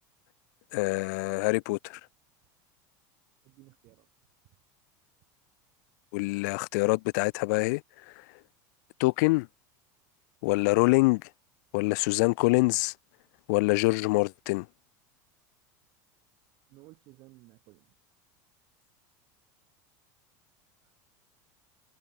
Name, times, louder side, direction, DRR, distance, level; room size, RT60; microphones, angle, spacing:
voice 1, 0.7-2.0 6.1-8.3 9.0-9.5 10.4-11.3 11.7-12.9 13.5-14.7, left 26 dB, 70° left, 0.7 m, -25 dB
voice 2, 3.4-4.1 16.7-18.0 20.8-21.0, right 22 dB, 50° right, 8.0 m, -56 dB
supercardioid pair, 155°, 10 cm